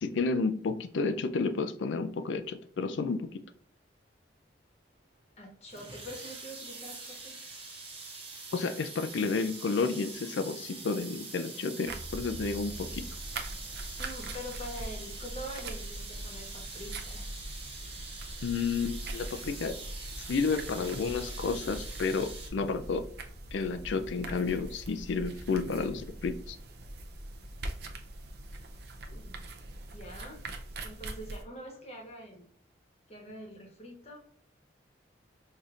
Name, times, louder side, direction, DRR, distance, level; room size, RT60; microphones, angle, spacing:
voice 1, 0.0-3.3 8.5-13.1 18.4-19.7 20.3-23.1 23.5-26.6, left 4 dB, 70° left, 10 dB, 0.4 m, -31 dB
voice 2, 5.4-7.4 14.0-17.3 29.1-29.5 29.9-30.4 30.8-32.4 33.1-34.2, equal, 35° left, 1 dB, 1.1 m, -45 dB
sound 1, 5.7-22.5, right 3 dB, 30° right, 1.0 m, -44 dB
sound 2, 11.8-31.4, right 1 dB, 55° right, 0.5 m, -42 dB
5.0 x 2.7 x 2.4 m, 0.62 s
head